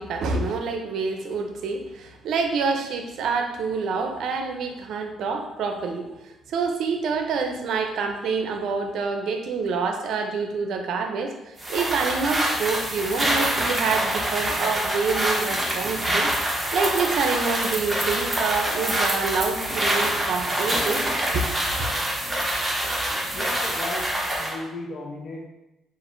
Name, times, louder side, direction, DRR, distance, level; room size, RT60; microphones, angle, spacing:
voice 1, 0.0-21.0 21.3-21.4, right 4 dB, 75° right, 5 dB, 0.5 m, -27 dB
sound 1, 11.6-24.6, right 1 dB, 15° right, 0.9 m, -25 dB
voice 2, 23.3-25.5, left 2 dB, 50° left, 1 dB, 0.7 m, -35 dB
5.9 x 2.5 x 2.5 m, 0.97 s
cardioid pair, 90°, 0 cm